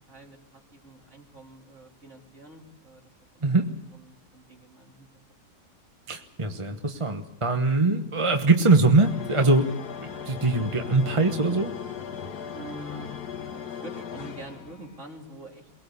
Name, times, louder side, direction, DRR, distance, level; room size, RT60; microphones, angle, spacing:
voice 1, 0.1-3.0 3.9-5.1 12.5-13.1 13.7-15.7, right 2 dB, 45° right, 0 dB, 3.6 m, -45 dB
voice 2, 6.1-11.7, right 3 dB, 20° right, 4 dB, 1.1 m, -22 dB
sound 1, 9.0-15.0, left 7 dB, 70° left, 1.8 m, -38 dB
23.0 x 19.0 x 7.0 m, 0.82 s
omnidirectional pair, 1.8 m